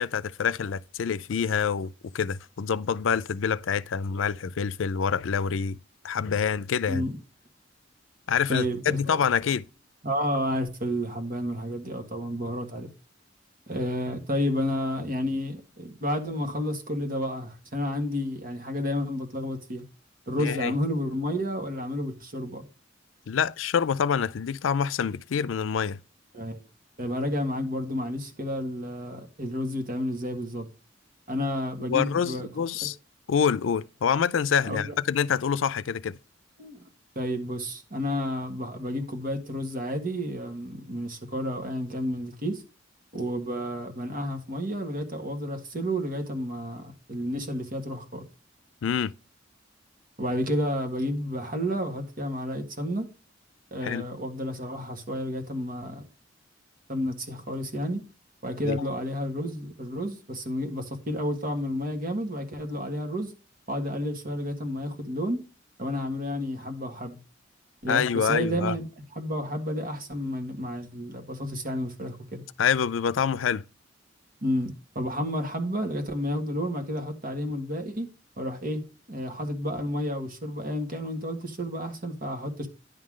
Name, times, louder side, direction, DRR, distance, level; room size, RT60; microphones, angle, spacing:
voice 1, 0.0-5.8 6.0-7.0 8.3-9.6 20.4-20.7 23.3-26.0 31.8-33.0 33.3-36.2 48.8-49.1 53.8-54.0 58.6-58.8 67.9-68.8 72.6-73.6, left 7 dB, 90° left, 0.4 m, -26 dB
voice 2, 8.5-9.2 10.0-12.9 13.7-19.8 20.3-22.7 26.3-26.6 27.0-30.7 31.3-32.5 32.8-32.9 34.7-34.9 36.6-36.8 37.1-42.6 43.1-48.2 50.2-53.1 53.7-56.0 56.9-58.0 58.4-63.3 63.7-65.4 65.8-67.2 67.8-68.9 69.1-72.4 74.4-78.1 78.4-78.8 79.1-82.7, equal, 50° right, 1.7 m, -31 dB
10.5 x 3.8 x 6.3 m
head